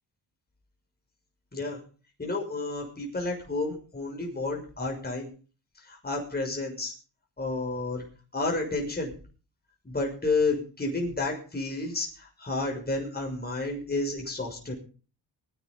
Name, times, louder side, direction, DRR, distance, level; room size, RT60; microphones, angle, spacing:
voice 1, 2.2-5.3 5.8-6.9 7.4-8.0 8.3-9.1 9.8-14.7, left 3 dB, 20° left, 0 dB, 6.3 m, -31 dB
21.0 x 10.0 x 5.5 m, 0.39 s
cardioid pair, 80°, 43 cm